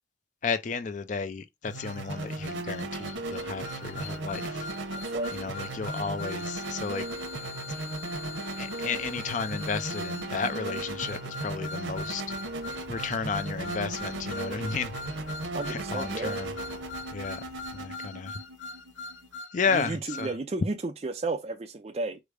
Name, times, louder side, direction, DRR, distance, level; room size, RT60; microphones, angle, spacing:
voice 1, 0.4-4.7 5.3-7.1 8.6-12.2 12.9-14.9 15.7-16.5 17.1-17.4 17.7-18.4 19.5-20.3, left 5 dB, 40° left, 0.4 m, -33 dB
sound 1, 1.7-20.3, left 3 dB, 85° left, 0.6 m, -43 dB
sound 2, 1.7-19.4, right 2 dB, 85° right, 0.9 m, -36 dB
sound 3, 12.1-17.8, left 1 dB, 65° left, 1.1 m, -53 dB
voice 2, 15.5-16.4 19.7-22.2, right 3 dB, 35° right, 0.4 m, -33 dB
4.9 x 2.0 x 4.8 m
head